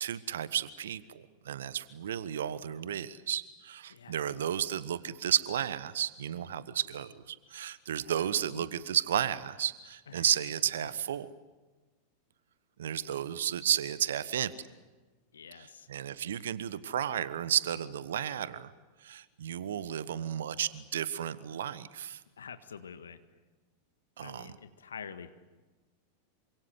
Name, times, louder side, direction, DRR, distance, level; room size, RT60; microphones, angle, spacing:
voice 1, 0.0-11.3 12.8-14.5 15.5-18.7 19.0-22.2 24.2-24.6, right 10 dB, 60° right, 17 dB, 1.2 m, -33 dB
voice 2, 8.0-8.7 10.1-10.2 10.8-10.9 15.3-15.9 22.4-23.2 24.2-25.3, left 7 dB, 70° left, 11 dB, 1.5 m, -47 dB
28.0 x 26.0 x 8.0 m, 1.3 s
figure-of-eight pair, 90°, 0 cm